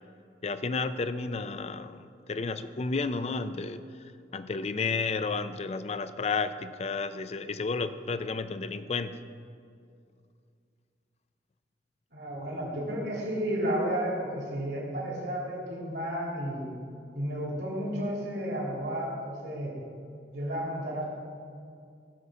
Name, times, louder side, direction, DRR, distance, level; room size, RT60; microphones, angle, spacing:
voice 1, 0.4-9.2, left 4 dB, 35° left, 12 dB, 0.4 m, -32 dB
voice 2, 12.1-16.7 17.1-19.8 20.3-21.1, equal, 75° right, -4 dB, 3.0 m, -32 dB
16.5 x 7.0 x 4.9 m, 2.3 s
head